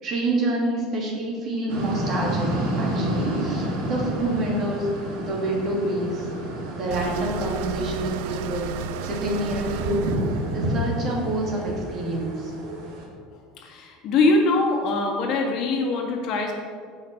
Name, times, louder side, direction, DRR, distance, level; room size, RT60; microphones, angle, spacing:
voice 1, 0.0-4.9 5.2-6.3 6.7-10.2 10.5-12.5, right 1 dB, 35° right, -2 dB, 2.9 m, -27 dB
sound 1, 1.7-13.0, equal, 60° right, 2.4 m, -30 dB
sound 2, 6.9-11.9, right 9 dB, 75° right, 0.5 m, -34 dB
voice 2, 13.3-16.5, left 3 dB, 45° left, 1 dB, 2.0 m, -23 dB
15.5 x 5.8 x 4.6 m, 2.1 s
cardioid pair, 155°, 0 cm